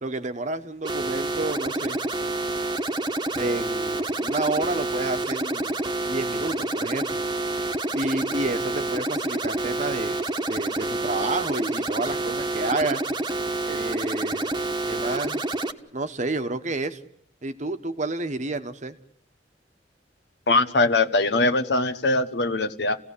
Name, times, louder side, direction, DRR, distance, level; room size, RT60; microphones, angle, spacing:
voice 1, 0.0-2.0 3.3-5.8 6.1-7.2 7.9-10.2 10.5-13.0 13.7-14.5 14.9-15.4 15.9-17.0 17.4-19.0, right 2 dB, 45° right, 9 dB, 1.2 m, -30 dB
sound 1, 0.8-15.7, right 2 dB, 25° right, 1.3 m, -28 dB
voice 2, 20.5-23.0, left 2 dB, 70° left, 11 dB, 1.2 m, -22 dB
29.0 x 17.0 x 8.5 m, 0.74 s
head